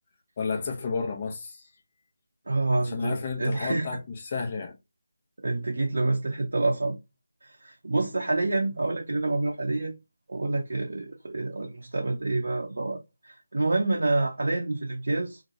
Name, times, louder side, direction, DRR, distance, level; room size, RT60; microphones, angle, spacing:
voice 1, 0.4-1.6 2.8-4.7, left 4 dB, 30° left, 0.7 m, -32 dB
voice 2, 2.5-3.9 5.4-7.0 7.4-9.9 10.3-15.4, right 2 dB, 60° right, 0.6 m, -27 dB
2.9 x 2.2 x 2.5 m
figure-of-eight pair, 160°, 0 cm